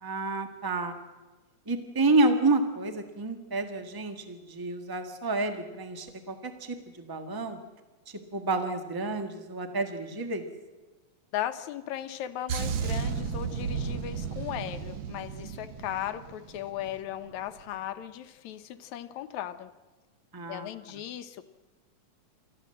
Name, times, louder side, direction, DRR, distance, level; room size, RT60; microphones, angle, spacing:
voice 1, 0.0-1.0 1.7-7.6 8.1-10.4 20.3-20.7, right 2 dB, 20° right, 7 dB, 0.6 m, -29 dB
voice 2, 11.3-19.7 20.5-21.4, left 11 dB, 75° left, 10 dB, 2.2 m, -37 dB
sound 1, 12.5-17.0 17.3-17.6, right 6 dB, 60° right, 1.3 m, -34 dB
28.5 x 14.0 x 7.7 m, 1.2 s
omnidirectional pair, 3.5 m